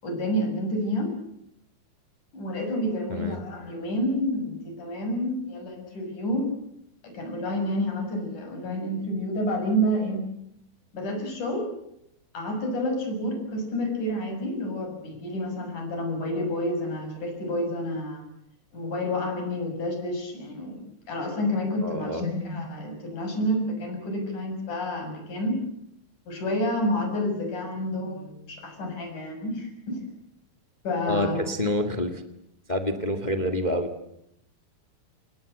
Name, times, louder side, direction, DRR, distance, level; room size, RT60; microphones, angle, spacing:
voice 1, 0.0-1.1 2.3-6.5 7.0-10.3 10.9-11.7 12.3-18.2 18.7-25.6 26.3-30.0 30.8-31.4, equal, 50° left, 4 dB, 8.1 m, -29 dB
voice 2, 3.1-3.4 21.8-22.2 31.1-32.2 32.7-33.9, left 1 dB, 25° left, 9 dB, 0.9 m, -27 dB
28.5 x 21.0 x 8.0 m, 0.79 s
omnidirectional pair, 4.4 m